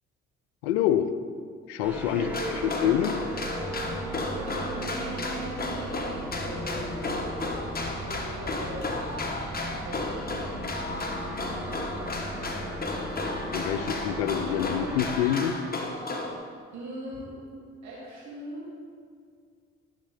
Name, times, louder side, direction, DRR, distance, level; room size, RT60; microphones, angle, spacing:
voice 1, 0.6-1.1 1.7-2.3 2.6-3.2 13.5-15.6, left 10 dB, 85° left, 10 dB, 0.5 m, -26 dB
sound 1, 1.8-15.2, equal, 5° right, 2.1 m, -36 dB
voice 2, 2.0-2.6 3.9-5.9 6.4-7.1 8.0-9.0 9.5-10.4 10.7-12.2 13.7-13.9 14.3-14.6 16.2-16.4 16.7-17.4 17.8-18.7, right 1 dB, 55° right, -6 dB, 2.4 m, -41 dB
sound 2, 2.3-16.3, left 2 dB, 30° left, 1.4 m, -34 dB
13.0 x 6.4 x 3.3 m, 2.2 s
hypercardioid pair, 50°, 33 cm